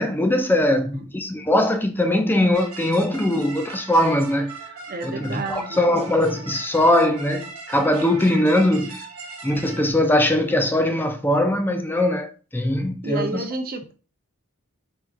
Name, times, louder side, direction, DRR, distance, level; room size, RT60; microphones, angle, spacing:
voice 1, 0.0-4.5 5.0-9.0 9.4-13.3, left 1 dB, 10° left, 0.4 m, -21 dB
voice 2, 0.6-1.1 4.9-5.8 13.0-13.9, right 2 dB, 45° right, 0.7 m, -31 dB
sound 1, 2.5-9.9, right 4 dB, 85° right, 1.0 m, -39 dB
4.6 x 2.5 x 3.6 m
head